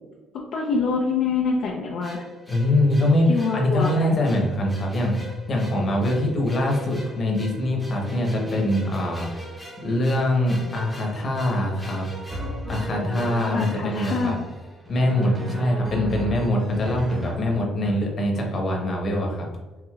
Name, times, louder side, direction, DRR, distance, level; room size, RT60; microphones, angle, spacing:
voice 1, 0.5-2.2 3.3-4.2 13.5-14.4 15.8-15.9, left 4 dB, 65° left, -2 dB, 0.5 m, -25 dB
sound 1, 2.0-15.3, equal, ahead, 0.8 m, -42 dB
voice 2, 2.5-9.6 9.8-12.1 12.7-14.3 14.9-19.5, left 1 dB, 40° left, 0 dB, 1.0 m, -23 dB
Drum, 12.3-13.8 14.8-17.9, right 2 dB, 25° right, 1.1 m, -33 dB
4.6 x 2.7 x 2.4 m, 1.2 s
cardioid pair, 105°, 0 cm